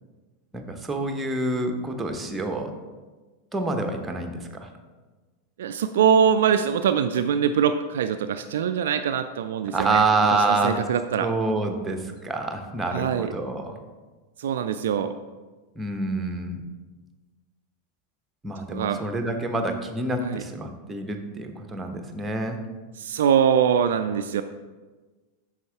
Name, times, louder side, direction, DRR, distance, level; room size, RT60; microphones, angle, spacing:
voice 1, 0.5-2.7 3.5-4.7 9.7-10.8 11.2-13.8 15.8-16.6 18.4-22.6, right 2 dB, 10° right, 5 dB, 0.9 m, -27 dB
voice 2, 5.6-10.0 10.5-11.3 12.9-13.3 14.4-15.2 18.7-19.0 20.2-20.4 23.0-24.4, right 8 dB, 60° right, 9 dB, 0.3 m, -23 dB
9.2 x 6.3 x 3.5 m, 1.3 s
figure-of-eight pair, 90°, 0 cm